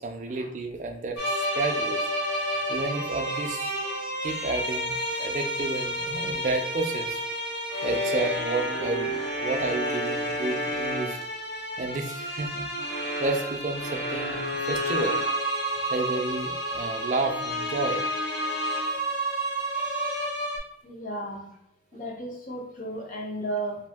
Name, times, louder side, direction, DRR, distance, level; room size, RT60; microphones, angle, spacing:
voice 1, 0.0-2.1 2.7-3.8 4.2-7.3 7.8-11.2 11.8-12.7 13.2-14.4 14.7-15.2 15.9-18.0, right 3 dB, 40° right, 4 dB, 0.4 m, -31 dB
sound 1, 1.2-20.6, equal, 70° left, 0.9 m, -30 dB
voice 2, 20.8-21.5 21.9-23.8, right 1 dB, 45° left, 0 dB, 0.7 m, -34 dB
2.6 x 2.5 x 3.5 m, 0.74 s
head